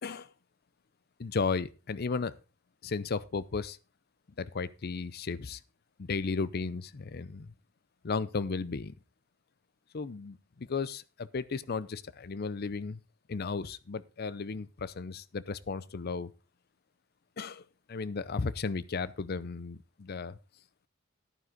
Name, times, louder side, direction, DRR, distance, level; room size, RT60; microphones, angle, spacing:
voice 1, 1.2-2.3 2.8-3.8 4.4-5.6 6.0-7.5 8.0-8.9 9.9-13.0 13.3-16.3 17.4-17.6 17.9-20.4, left 4 dB, 50° left, 0.5 m, -34 dB
11.0 x 9.5 x 3.8 m
head